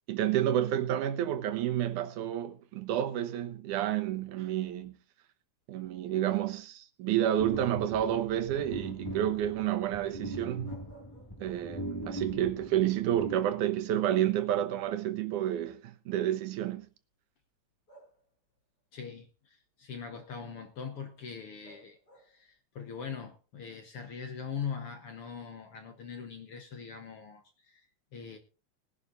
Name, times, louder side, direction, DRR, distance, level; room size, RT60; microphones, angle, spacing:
voice 1, 0.1-5.0 5.7-10.7 11.4-16.9, right 11 dB, 75° right, 2.4 m, -30 dB
sound 1, 7.4-14.0, left 1 dB, 10° left, 1.1 m, -42 dB
sound 2, 10.6-11.8 12.2-12.3 13.9-14.0 14.3-15.5 16.5-16.6 17.9-18.6 21.6-22.5, right 1 dB, 30° left, 5.9 m, -58 dB
voice 2, 18.9-28.4, left 6 dB, 60° left, 1.6 m, -42 dB
20.5 x 11.5 x 2.6 m
omnidirectional pair, 3.7 m